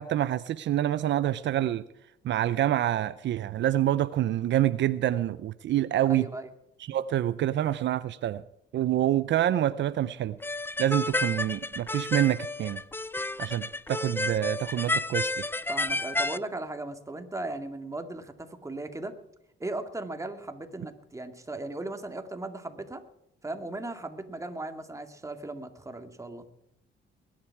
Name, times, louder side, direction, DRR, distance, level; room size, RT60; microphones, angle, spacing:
voice 1, 0.0-1.8 2.2-6.3 6.9-8.4 8.7-10.4 10.8-12.8 13.4-15.5, right 12 dB, 65° right, 0.6 m, -27 dB
voice 2, 6.1-6.5 15.7-19.1 19.6-23.0 23.4-26.5, right 2 dB, 15° right, 2.2 m, -37 dB
sound 1, 10.4-16.4, left 2 dB, 10° left, 0.6 m, -31 dB
21.5 x 10.5 x 4.7 m
cardioid pair, 90°, 20 cm